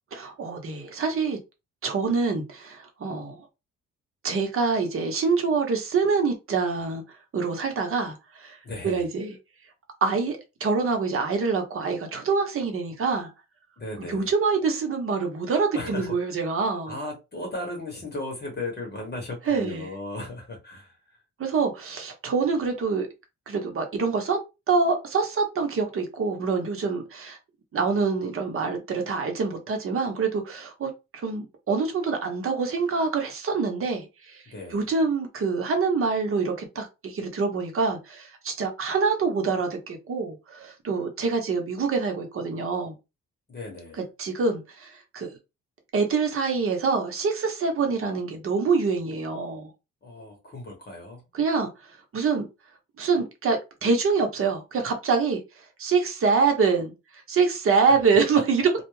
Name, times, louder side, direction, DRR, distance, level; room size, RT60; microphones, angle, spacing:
voice 1, 0.1-1.4 1.8-3.4 4.2-7.0 7.3-8.6 8.8-9.3 10.0-13.3 14.1-17.0 19.5-19.9 21.4-23.1 23.5-24.4 24.7-27.4 27.7-34.4 34.7-42.9 44.2-45.4 45.9-49.7 51.3-51.7 52.1-52.5 53.0-55.4 55.8-56.9 57.3-58.7, right 4 dB, 45° right, 0.9 m, -25 dB
voice 2, 8.6-9.0 13.8-14.3 15.7-16.1 16.8-21.2 34.5-34.8 43.5-44.0 50.0-51.2 57.9-58.0 58.3-58.4, left 2 dB, 35° left, 0.9 m, -36 dB
2.3 x 2.2 x 3.1 m
cardioid pair, 90°, 30 cm